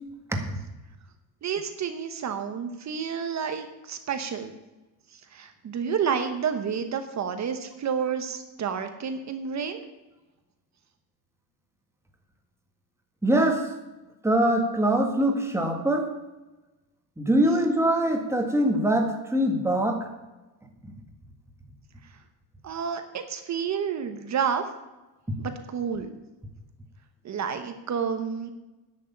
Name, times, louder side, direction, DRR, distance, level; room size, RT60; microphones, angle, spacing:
voice 1, 1.4-4.5 5.3-9.8 22.6-24.7 25.4-26.1 27.2-28.5, right 7 dB, 40° right, 8 dB, 1.0 m, -30 dB
voice 2, 13.2-13.7 14.2-16.1 17.2-20.1, right 1 dB, 5° right, 3 dB, 1.8 m, -23 dB
10.5 x 6.5 x 8.7 m, 1.1 s
cardioid pair, 135°, 40 cm